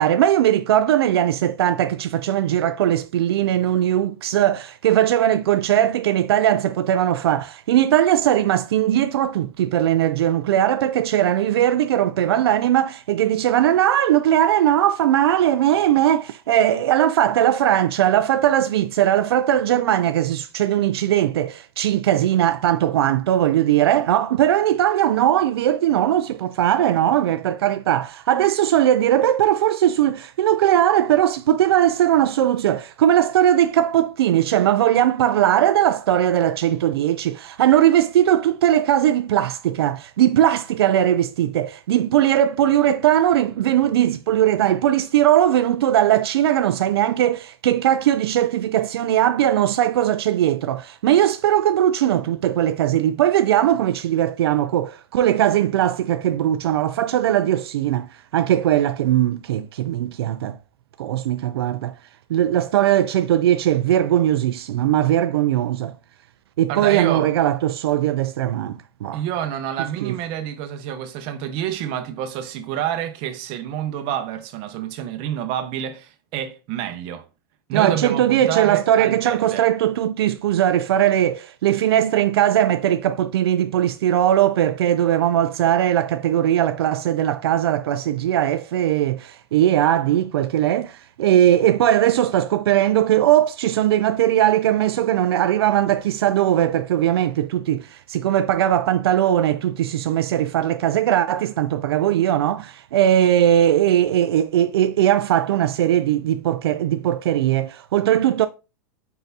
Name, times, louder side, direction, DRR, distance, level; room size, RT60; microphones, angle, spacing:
voice 1, 0.0-60.6 61.0-61.9 62.3-65.9 66.6-69.2 70.0-70.1 77.7-108.5, right 11 dB, 85° right, 0.4 m, -19 dB
voice 2, 66.7-67.3 69.1-77.2 77.7-79.7, right 10 dB, 45° right, 0.9 m, -28 dB
4.7 x 3.9 x 2.7 m
supercardioid pair, 135°, 13 cm